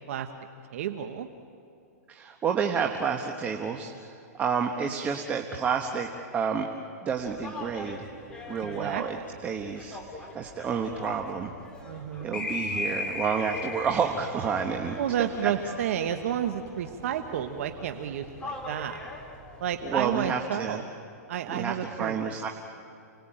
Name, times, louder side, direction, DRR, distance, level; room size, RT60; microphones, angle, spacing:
voice 1, 0.7-1.3 8.6-9.0 11.8-12.5 15.0-19.1 19.6-20.8 21.3-22.2, right 9 dB, 55° right, 7 dB, 1.2 m, -31 dB
voice 2, 2.1-6.7 7.0-8.1 8.5-9.2 9.4-11.5 12.2-15.0 15.4-15.5 19.8-20.8 21.5-22.5, right 6 dB, 15° right, 3 dB, 1.2 m, -30 dB
sound 1, 7.1-20.3, left 2 dB, 10° left, 2.4 m, -39 dB
28.5 x 19.5 x 8.9 m, 2.6 s
hypercardioid pair, 155°, 9 cm